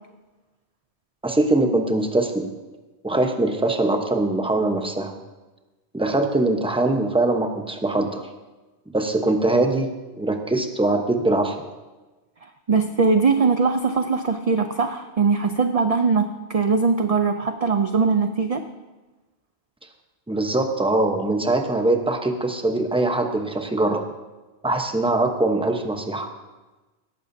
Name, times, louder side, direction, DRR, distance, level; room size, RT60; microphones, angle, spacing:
voice 1, 1.2-2.5 3.0-5.1 5.9-8.2 8.9-9.9 10.2-11.6 20.3-24.0 24.6-26.3, right 2 dB, 5° right, 4 dB, 0.9 m, -22 dB
voice 2, 12.7-18.6, right 4 dB, 40° right, 7 dB, 0.6 m, -21 dB
18.0 x 14.0 x 2.8 m, 1.2 s
omnidirectional pair, 1.2 m